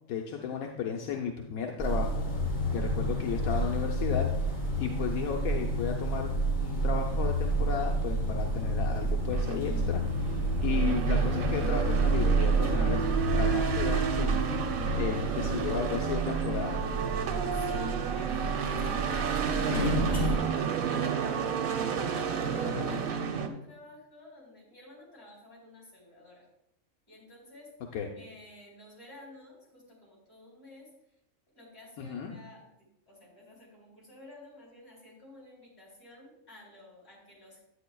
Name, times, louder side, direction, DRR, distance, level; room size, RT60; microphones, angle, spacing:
voice 1, 0.1-2.3 2.7-14.6 14.9-16.8 22.6-23.0 27.9-28.1 32.0-32.3, left 7 dB, 85° left, 1 dB, 1.2 m, -34 dB
sound 1, 1.8-20.4, right 2 dB, 70° left, 3.1 m, -29 dB
sound 2, 6.0-23.5, right 7 dB, 85° right, 1.2 m, -32 dB
voice 2, 17.5-26.5 27.1-27.7 28.2-30.9 31.5-37.6, left 1 dB, 50° left, -4 dB, 3.9 m, -53 dB
10.0 x 8.5 x 2.3 m, 0.81 s
omnidirectional pair, 1.4 m